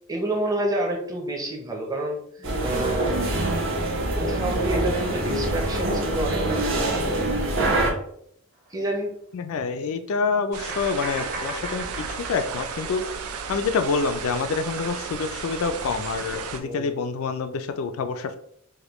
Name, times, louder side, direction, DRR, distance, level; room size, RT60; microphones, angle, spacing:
voice 1, 0.1-3.2 4.1-7.6 8.7-9.1 16.5-17.0, right 1 dB, 15° right, 0 dB, 0.6 m, -29 dB
sound 1, 2.4-7.9, right 1 dB, 60° right, 0.8 m, -25 dB
sound 2, 8.6-8.7 10.7-13.6, right 2 dB, 40° right, 1.1 m, -37 dB
voice 2, 9.3-13.1 13.5-18.4, left 4 dB, 70° left, 8 dB, 0.3 m, -27 dB
sound 3, 10.5-16.6, right 5 dB, 80° right, 0.4 m, -34 dB
5.0 x 2.2 x 3.0 m, 0.69 s
head